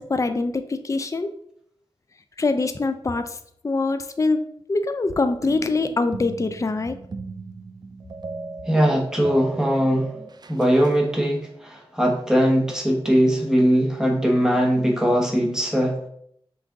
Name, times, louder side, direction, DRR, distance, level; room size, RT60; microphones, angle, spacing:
voice 1, 0.0-1.3 2.4-3.4 3.6-4.4 4.7-7.0, left 3 dB, 30° left, 8 dB, 0.4 m, -24 dB
sound 1, 5.4-11.0, right 4 dB, 45° right, 0.3 m, -37 dB
voice 2, 8.7-10.1 10.5-16.0, equal, 5° right, -1 dB, 1.1 m, -20 dB
5.7 x 2.6 x 3.5 m, 0.69 s
wide cardioid pair, 70°, 10 cm